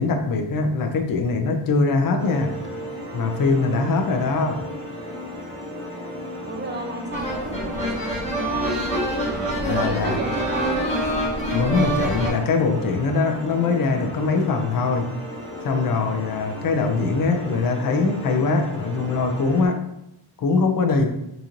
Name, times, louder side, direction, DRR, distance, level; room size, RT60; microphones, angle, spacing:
voice 1, 0.0-2.5 3.1-4.6 9.6-10.1 11.5-15.1 15.6-19.8 20.4-21.1, left 4 dB, 50° left, 4 dB, 0.5 m, -22 dB
sound 1, 2.2-19.7, left 1 dB, 65° right, 1.3 m, -35 dB
voice 2, 6.4-8.1 8.4-8.7 9.7-11.0, right 2 dB, 25° right, 3 dB, 0.3 m, -32 dB
sound 2, 7.1-12.3, right 1 dB, 15° left, 0.8 m, -26 dB
3.9 x 2.5 x 2.9 m, 0.83 s
wide cardioid pair, 170°, 46 cm